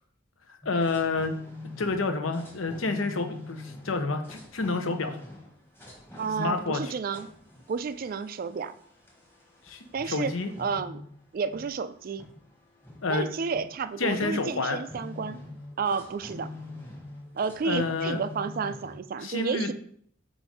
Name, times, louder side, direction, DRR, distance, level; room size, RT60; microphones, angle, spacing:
voice 1, 0.6-1.3 1.8-5.2 6.4-6.9 9.6-10.5 13.0-13.2 14.0-14.8 17.6-18.2 19.2-19.7, left 3 dB, 80° left, 7 dB, 0.8 m, -29 dB
sound 1, 0.6-19.0, left 2 dB, 10° left, 1.2 m, -44 dB
voice 2, 6.2-7.3 7.7-8.7 9.9-10.3 10.6-11.0 11.3-12.3 13.1-15.4 15.8-16.5 17.3-19.7, right 5 dB, 45° right, 13 dB, 0.3 m, -31 dB
7.8 x 2.6 x 4.8 m, 0.63 s
head